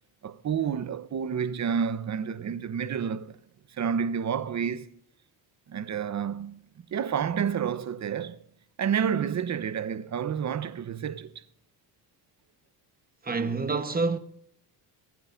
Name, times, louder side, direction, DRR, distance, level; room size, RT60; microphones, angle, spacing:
voice 1, 0.2-3.4 3.8-4.9 5.7-6.6 6.9-8.5 8.8-11.3, right 7 dB, 35° right, 1.0 m, -29 dB
voice 2, 13.2-14.2, right 4 dB, 20° right, 1.2 m, -27 dB
24.5 x 9.4 x 2.7 m
supercardioid pair, 90°, 47 cm